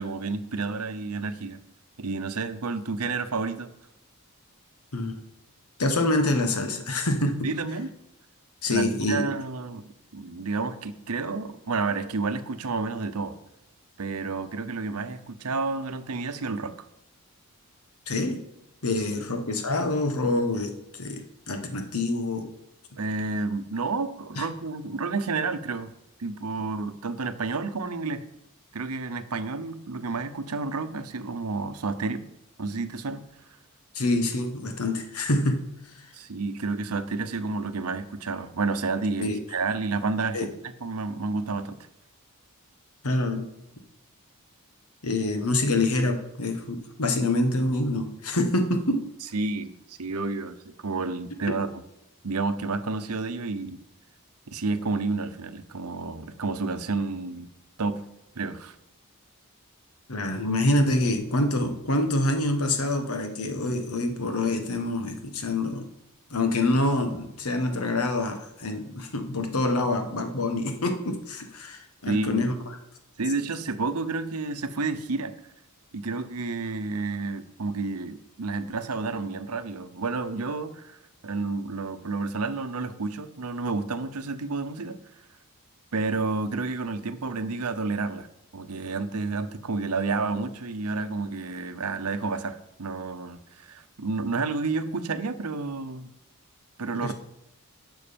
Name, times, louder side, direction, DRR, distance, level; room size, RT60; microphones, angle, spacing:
voice 1, 0.0-1.6 2.0-3.7 7.4-8.0 8.7-13.4 14.0-16.8 23.0-25.9 26.2-28.2 28.7-32.2 32.6-33.2 36.1-40.5 40.8-41.8 49.3-51.7 52.2-53.8 54.5-57.5 57.8-58.0 58.4-58.7 72.1-72.4 73.2-75.3 75.9-81.0 81.2-85.0 85.9-88.3 88.5-96.1 96.8-97.1, right 3 dB, 85° right, 10 dB, 0.8 m, -30 dB
voice 2, 5.8-7.5 8.6-9.3 18.1-18.4 18.8-22.5 24.4-24.5 33.9-35.6 35.9-36.1 39.2-39.4 40.3-40.5 43.0-43.4 45.0-49.0 60.1-65.9 66.3-72.5 97.0-97.1, left 2 dB, 80° left, 5 dB, 1.4 m, -26 dB
11.5 x 6.3 x 5.2 m, 0.86 s
head